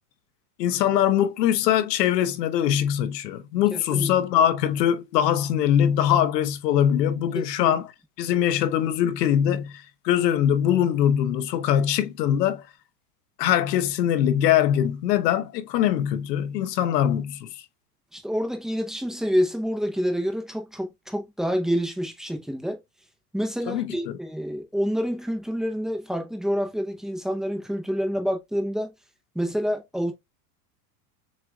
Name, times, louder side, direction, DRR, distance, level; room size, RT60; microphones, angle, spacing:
voice 1, 0.6-7.9 8.2-12.6 13.4-17.6 23.7-24.1, left 10 dB, 90° left, 1.0 m, -22 dB
voice 2, 3.7-4.1 7.6-7.7 18.1-22.8 23.3-28.9 29.3-30.1, equal, ahead, 0.6 m, -27 dB
6.9 x 3.1 x 2.3 m
supercardioid pair, 150°, 47 cm